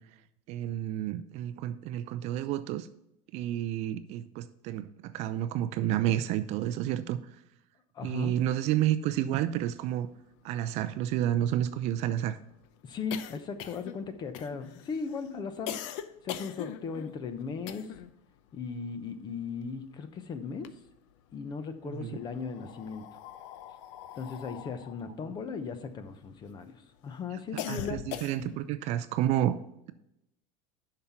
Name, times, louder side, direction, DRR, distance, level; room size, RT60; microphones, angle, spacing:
voice 1, 0.5-2.9 3.3-7.2 8.0-10.1 10.4-12.4 21.9-22.2 27.7-29.6, right 12 dB, 40° right, 12 dB, 0.5 m, -30 dB
voice 2, 7.9-8.4 12.8-15.9 16.2-17.9 18.5-20.8 21.3-23.1 24.2-28.1, left 5 dB, 25° left, 11 dB, 0.8 m, -37 dB
sound 1, 10.0-10.1 10.3-10.4 10.7-18.2 18.5-20.0 20.4-21.3 22.1-26.6 27.0-28.7, left 10 dB, 60° left, 0.7 m, -42 dB
8.6 x 5.8 x 5.8 m, 0.83 s
supercardioid pair, 155°, 18 cm